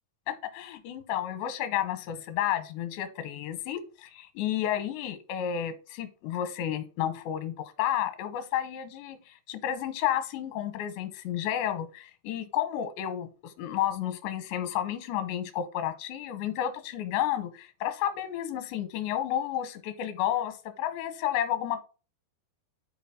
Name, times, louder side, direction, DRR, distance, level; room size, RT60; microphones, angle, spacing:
voice 1, 0.3-21.8, left 11 dB, 85° left, 11 dB, 3.1 m, -31 dB
10.0 x 4.3 x 3.6 m, 0.34 s
omnidirectional pair, 5.0 m